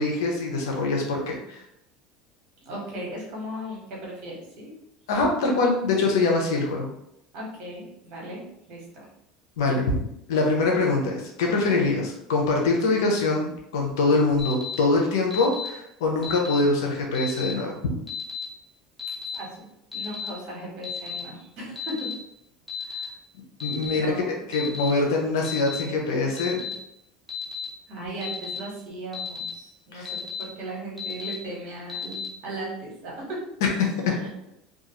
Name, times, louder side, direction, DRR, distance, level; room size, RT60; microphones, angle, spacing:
voice 1, 0.0-1.6 5.1-6.9 9.6-10.0 10.3-17.8 23.6-26.7 29.9-30.1 33.6-33.9, left 3 dB, 85° left, 0 dB, 0.7 m, -24 dB
voice 2, 2.6-4.7 7.3-8.4 8.7-9.1 19.3-19.7 19.9-22.1 22.8-23.1 23.9-24.4 27.9-30.1 30.4-33.4 34.1-34.3, right 1 dB, 60° right, -2 dB, 1.2 m, -37 dB
Alarm, 14.4-14.7 15.3-15.7 16.2-16.6 17.1-17.5 18.1-18.4 19.0-19.3 19.9-20.3 20.8-21.2 21.8-22.1 22.7-23.0 23.6-24.0 24.5-24.9 25.4-25.8 26.4-26.7 27.3-27.6 28.2-28.6 29.1-29.5 30.0-30.4 31.0-31.3 31.9-32.3, left 6 dB, 5° left, 1.0 m, -33 dB
2.4 x 2.4 x 2.9 m, 0.80 s
supercardioid pair, 100°, 2 cm